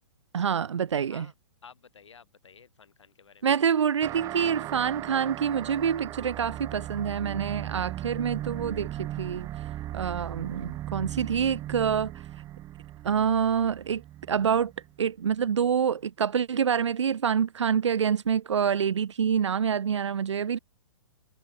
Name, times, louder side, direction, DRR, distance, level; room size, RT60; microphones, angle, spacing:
voice 1, 0.3-1.3 3.4-9.5 9.9-12.1 13.0-14.0 14.3-14.7 15.0-20.6, right 7 dB, 75° right, 0.9 m, -26 dB
voice 2, 1.6-3.5, left 6 dB, 80° left, 5.8 m, -53 dB
sound 1, 4.0-15.0, right 13 dB, 20° right, 0.7 m, -38 dB
hypercardioid pair, 125°, 15 cm